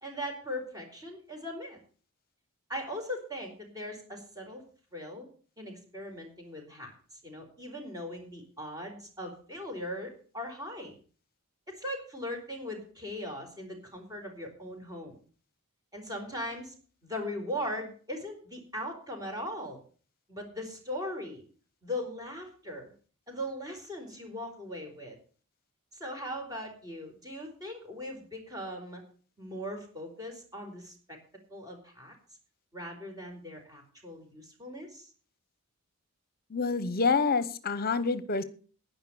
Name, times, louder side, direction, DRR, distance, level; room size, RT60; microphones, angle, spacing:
voice 1, 0.0-1.8 2.7-4.6 4.9-5.3 5.6-10.9 11.7-15.2 15.9-16.7 17.0-19.8 20.3-21.4 21.8-22.9 23.3-25.2 25.9-29.0 29.4-31.2 31.5-32.1 32.7-35.1, equal, 15° right, 3 dB, 4.5 m, -39 dB
voice 2, 36.5-38.4, left 4 dB, 45° left, 14 dB, 0.9 m, -27 dB
11.0 x 10.0 x 6.9 m, 0.41 s
head